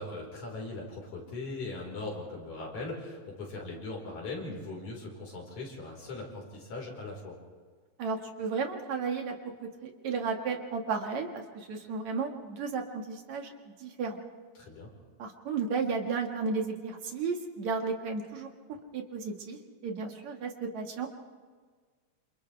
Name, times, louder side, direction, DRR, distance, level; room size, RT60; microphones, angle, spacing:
voice 1, 0.0-7.4 14.6-14.9, left 2 dB, 85° left, -1 dB, 6.1 m, -40 dB
voice 2, 8.0-9.3 9.6-13.5 13.8-14.2 15.2-21.2, right 5 dB, 70° right, 2 dB, 3.2 m, -34 dB
28.5 x 27.5 x 3.5 m, 1.5 s
omnidirectional pair, 3.3 m